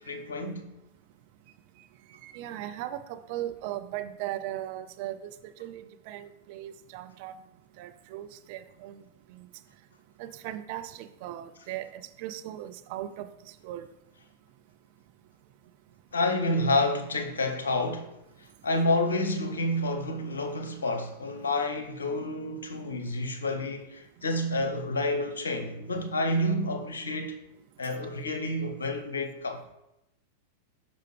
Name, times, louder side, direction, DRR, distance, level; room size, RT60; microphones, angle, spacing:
voice 1, 0.1-0.6 16.1-18.1 18.6-27.4 27.8-29.6, left 1 dB, 70° left, 0.9 m, -29 dB
voice 2, 2.2-7.4 7.8-9.0 10.2-13.3 13.6-13.9, right 13 dB, 50° right, 0.4 m, -38 dB
6.0 x 5.6 x 3.2 m
figure-of-eight pair, 90°, 0 cm